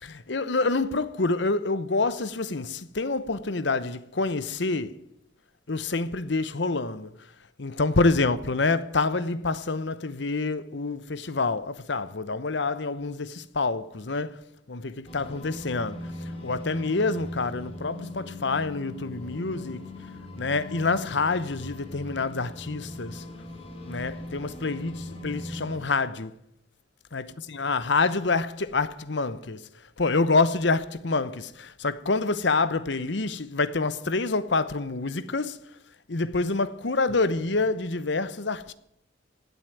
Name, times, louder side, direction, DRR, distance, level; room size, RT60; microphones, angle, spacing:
voice 1, 0.0-4.9 5.7-7.1 7.6-14.4 14.7-19.9 20.4-23.2 23.8-26.3 27.1-29.7 30.0-35.6 36.1-38.7, left 3 dB, 65° left, 0.9 m, -27 dB
sound 1, 15.0-25.8, left 1 dB, 30° left, 2.9 m, -40 dB
16.5 x 8.2 x 9.3 m
head